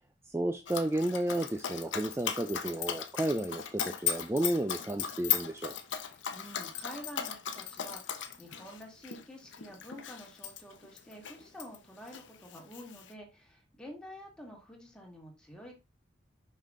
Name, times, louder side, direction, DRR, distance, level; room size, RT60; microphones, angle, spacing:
voice 1, 0.2-5.8, right 1 dB, 15° right, 0.4 m, -32 dB
Dog, 0.7-11.8 12.1-13.1, left 9 dB, 80° left, 0.8 m, -37 dB
voice 2, 6.0-15.7, equal, 5° left, 1.8 m, -49 dB
5.7 x 5.4 x 3.7 m
head